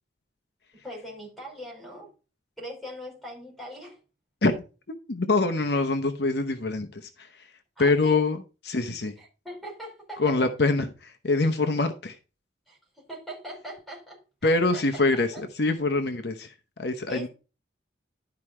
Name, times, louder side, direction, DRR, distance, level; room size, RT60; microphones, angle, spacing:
voice 1, 0.8-2.1 2.6-4.0 7.8-8.2 9.2-10.4 12.7-15.4 17.1-17.3, equal, ahead, 4.8 m, -41 dB
voice 2, 5.1-7.5 7.8-9.2 10.2-12.2 14.4-17.3, left 3 dB, 65° left, 0.9 m, -25 dB
12.0 x 4.8 x 4.4 m
head